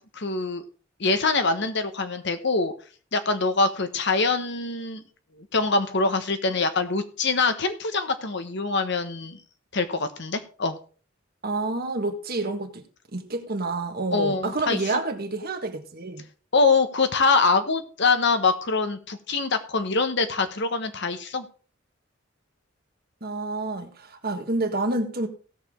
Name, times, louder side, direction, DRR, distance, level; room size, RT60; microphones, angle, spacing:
voice 1, 0.1-0.6 1.0-2.7 3.1-5.0 5.5-9.4 9.7-10.8 14.1-15.0 16.5-21.4, left 3 dB, 65° left, 1.3 m, -24 dB
voice 2, 11.4-12.8 13.1-16.2 23.2-25.3, right 2 dB, 50° right, 1.6 m, -28 dB
17.0 x 6.8 x 3.7 m
head